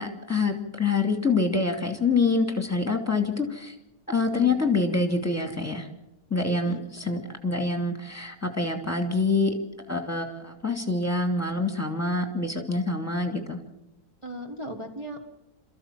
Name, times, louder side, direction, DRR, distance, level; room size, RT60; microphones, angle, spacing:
voice 1, 0.0-3.8 4.1-5.9 6.3-9.5 9.9-13.6, left 3 dB, 10° left, 5 dB, 2.5 m, -26 dB
voice 2, 4.1-4.6 6.6-6.8 14.2-15.2, equal, 20° right, 0 dB, 1.8 m, -37 dB
28.0 x 14.5 x 7.5 m, 0.89 s
omnidirectional pair, 1.6 m